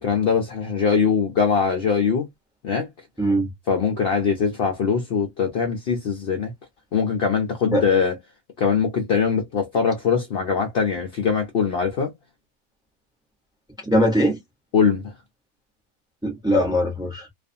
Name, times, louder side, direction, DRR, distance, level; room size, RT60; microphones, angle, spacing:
voice 1, 0.0-2.3 2.6-2.9 3.7-6.5 6.9-8.1 8.6-12.1 14.7-15.1, left 6 dB, 65° left, 0.6 m, -22 dB
voice 2, 3.2-3.5 7.7-7.9 13.8-14.4 16.2-17.3, equal, 5° right, 0.4 m, -21 dB
2.5 x 2.4 x 2.5 m
omnidirectional pair, 1.6 m